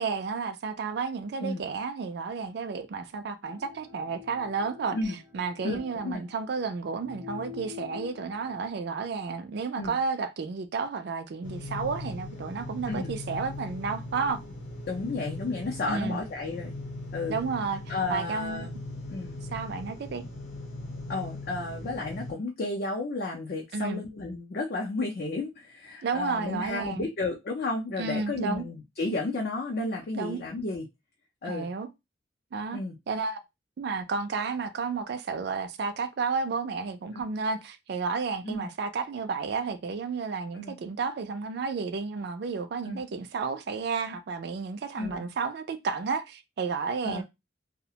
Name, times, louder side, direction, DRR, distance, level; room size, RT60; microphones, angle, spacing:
voice 1, 0.0-14.4 15.9-16.2 17.3-18.7 19.5-20.2 23.7-24.0 26.0-27.1 28.0-28.6 30.1-30.4 31.5-31.9 32.5-32.8 33.1-33.4 33.8-47.2, right 4 dB, 60° right, 0.4 m, -32 dB
sound 1, 3.4-8.7, left 6 dB, 5° left, 0.6 m, -46 dB
voice 2, 5.6-6.2 9.8-10.0 12.9-13.1 14.9-16.7 17.1-17.4 17.9-18.7 19.1-19.3 21.1-30.9 31.4-31.7 32.7-33.0 37.1-37.2 38.4-38.7 40.5-40.8 42.8-43.0 45.0-45.3 47.0-47.2, left 2 dB, 55° left, 0.5 m, -32 dB
sound 2, 11.4-22.3, left 2 dB, 90° left, 0.8 m, -39 dB
2.4 x 2.1 x 2.7 m
head